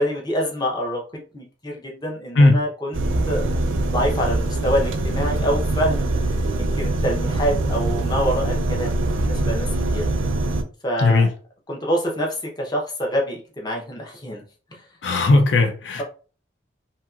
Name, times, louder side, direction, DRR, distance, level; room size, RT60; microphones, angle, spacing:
voice 1, 0.0-3.4 3.9-6.1 6.6-10.0 10.8-11.2 11.7-14.4 14.7-14.8, equal, 20° left, 0.6 m, -26 dB
sound 1, 2.9-10.6, right 2 dB, 90° right, 0.4 m, -23 dB
voice 2, 11.0-11.3 15.0-16.0, left 2 dB, 70° left, 0.5 m, -16 dB
2.8 x 2.8 x 2.3 m
head